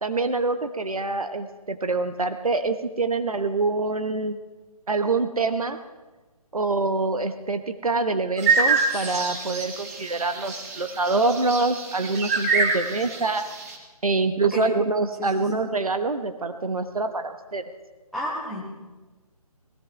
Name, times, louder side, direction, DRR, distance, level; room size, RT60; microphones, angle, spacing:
voice 1, 0.0-4.4 4.9-5.8 6.5-13.4 14.0-17.6, right 3 dB, 70° right, 8 dB, 1.1 m, -25 dB
sound 1, 8.4-13.7, right 4 dB, 25° right, 1.6 m, -26 dB
voice 2, 15.2-15.5 18.1-18.6, equal, ahead, -6 dB, 1.9 m, -31 dB
18.5 x 16.5 x 3.3 m, 1.3 s
figure-of-eight pair, 150°, 19 cm